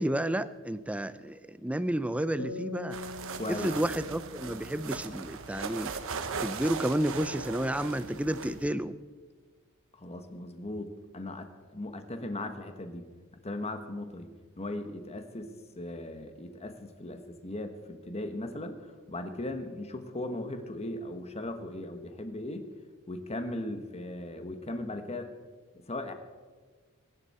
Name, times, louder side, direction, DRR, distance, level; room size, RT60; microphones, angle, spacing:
voice 1, 0.0-3.0 3.5-5.9 6.4-9.0, right 1 dB, 5° right, 14 dB, 0.4 m, -31 dB
sound 1, 2.4-5.9, left 3 dB, 75° left, 2.0 m, -44 dB
sound 2, 2.9-8.7, right 5 dB, 65° right, 1.1 m, -38 dB
voice 2, 3.3-3.8 9.9-13.1 13.4-14.3 14.6-15.5 15.8-22.7 23.1-25.3 25.9-26.1, left 1 dB, 30° left, 7 dB, 1.3 m, -38 dB
23.0 x 11.0 x 4.3 m, 1.5 s
head